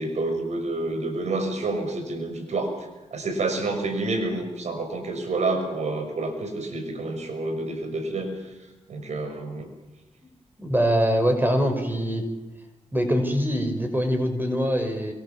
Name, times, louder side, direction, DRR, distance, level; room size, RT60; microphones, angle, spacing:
voice 1, 0.0-2.7 3.1-8.3 8.9-9.6, right 2 dB, 75° right, 6 dB, 6.8 m, -28 dB
voice 2, 10.6-12.3 12.9-15.1, equal, 15° right, 6 dB, 5.6 m, -23 dB
28.5 x 26.0 x 7.3 m, 1.1 s
cardioid pair, 60°, 12 cm